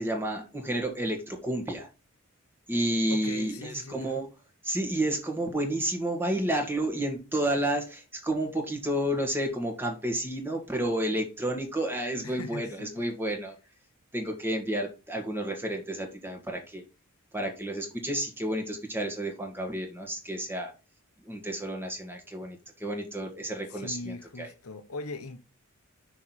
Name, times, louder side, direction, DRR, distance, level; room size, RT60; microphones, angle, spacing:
voice 1, 0.0-1.9 2.7-4.3 4.6-13.5 14.1-16.8 17.3-20.7 21.3-24.5, right 1 dB, 10° right, 1.7 m, -31 dB
voice 2, 3.1-4.2 12.2-12.9 23.7-25.4, left 3 dB, 75° left, 1.0 m, -40 dB
6.2 x 4.6 x 5.7 m
head